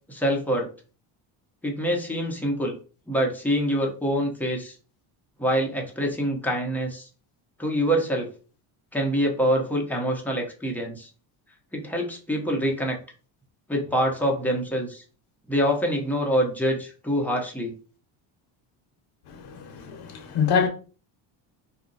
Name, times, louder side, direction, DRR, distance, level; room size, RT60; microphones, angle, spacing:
voice 1, 0.1-0.7 1.6-2.8 3.1-4.8 5.4-7.1 7.6-8.3 8.9-11.1 11.7-13.0 13.7-15.0 15.5-17.7, equal, 5° left, 0.8 m, -25 dB
voice 2, 19.3-20.7, left 6 dB, 55° left, 0.9 m, -25 dB
2.5 x 2.1 x 3.8 m
cardioid pair, 100°, 49 cm